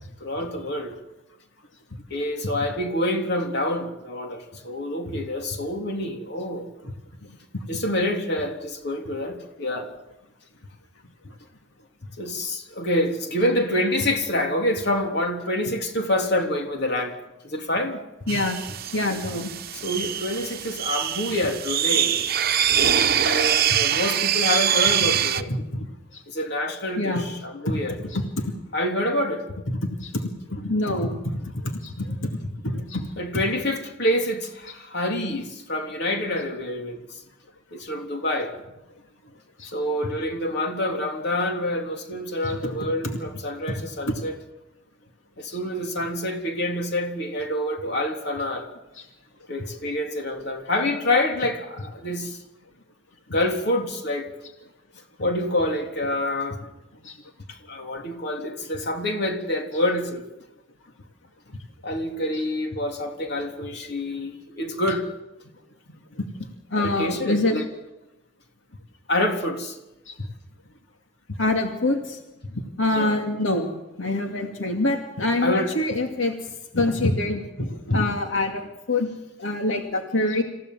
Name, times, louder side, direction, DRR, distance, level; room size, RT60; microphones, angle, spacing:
voice 1, 0.2-0.9 2.1-6.7 7.7-9.9 12.2-17.2 17.4-18.0 19.7-22.2 23.1-25.5 26.3-28.0 28.7-29.4 33.2-37.2 37.7-38.5 39.7-44.3 45.4-48.7 49.5-52.4 53.3-54.3 55.2-56.6 57.5-60.3 61.8-65.1 66.8-67.7 69.1-69.8 72.9-73.2 75.4-75.7, left 1 dB, 60° left, 3.5 m, -27 dB
voice 2, 18.3-18.6 18.9-19.5 23.7-23.8 25.5-25.9 26.1-26.2 27.0-27.2 27.6-27.8 28.1-28.5 30.0-30.2 30.5-32.3 32.6-33.1 39.6-39.7 42.4-42.8 43.0-43.1 44.1-44.2 57.0-57.2 66.2-66.3 66.7-67.6 70.1-70.2 71.4-72.2 72.8-76.3 76.7-79.1 79.4-80.4, left 2 dB, 90° left, 2.3 m, -25 dB
sound 1, 18.3-25.4, right 9 dB, 50° right, 0.9 m, -23 dB
27.0 x 15.5 x 7.6 m
head